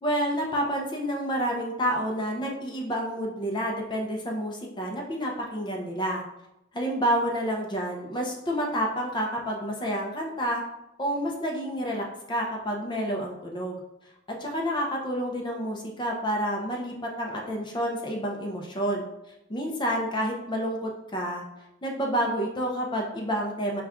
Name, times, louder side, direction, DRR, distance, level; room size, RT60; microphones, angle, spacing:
voice 1, 0.0-6.2 6.7-10.6 11.0-13.8 14.4-19.1 19.5-21.4 21.8-23.8, equal, 20° left, 0 dB, 0.6 m, -29 dB
5.5 x 2.4 x 3.5 m, 0.88 s
head